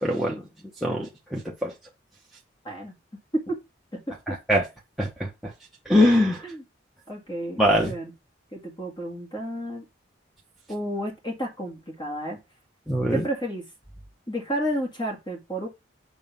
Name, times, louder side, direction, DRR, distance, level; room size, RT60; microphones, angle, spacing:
voice 1, 0.0-0.4 0.8-1.7 4.3-4.6 5.0-5.5 5.9-6.5 7.6-7.9 12.9-13.3, equal, ahead, 1.0 m, -23 dB
voice 2, 3.9-4.4 6.4-6.6 7.1-8.1 8.5-9.8 10.7-12.4 13.1-13.7 14.3-15.7, right 1 dB, 25° left, 1.9 m, -31 dB
7.2 x 3.3 x 5.6 m
head